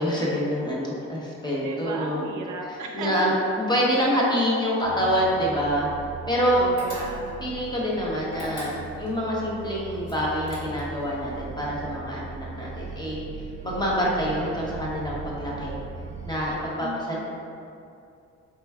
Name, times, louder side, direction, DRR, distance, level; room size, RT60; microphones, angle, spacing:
voice 1, 0.0-2.2 2.6-5.9 6.3-6.7 7.4-13.2 13.6-15.7 16.2-17.2, equal, 15° left, -5 dB, 1.0 m, -26 dB
voice 2, 1.6-3.3 6.5-7.4 16.8-17.2, right 3 dB, 75° right, 0 dB, 0.5 m, -35 dB
sound 1, 4.8-16.4, right 4 dB, 40° right, 0.7 m, -39 dB
sound 2, 6.8-7.5 8.3-9.2 10.0-11.0, left 1 dB, 50° left, 1.2 m, -39 dB
4.4 x 3.0 x 2.3 m, 2.5 s
supercardioid pair, 60°, 30 cm